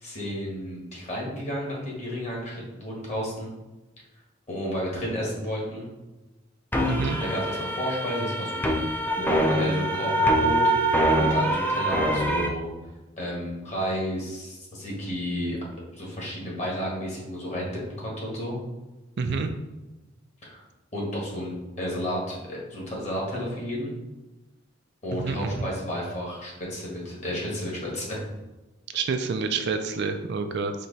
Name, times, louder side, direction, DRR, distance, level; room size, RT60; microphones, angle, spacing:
voice 1, 0.0-3.5 4.5-5.9 7.2-8.8 9.2-12.7 13.2-15.6 15.9-17.7 18.0-18.5 20.4-20.6 20.9-23.9 25.0-28.2, equal, 35° left, -4 dB, 1.4 m, -32 dB
sound 1, 6.7-12.5, right 1 dB, 10° left, 0.4 m, -24 dB
voice 2, 6.9-7.2 19.2-19.5 25.1-25.7 28.9-30.7, right 4 dB, 55° right, 7 dB, 0.4 m, -28 dB
4.5 x 2.9 x 4.0 m, 1.1 s
head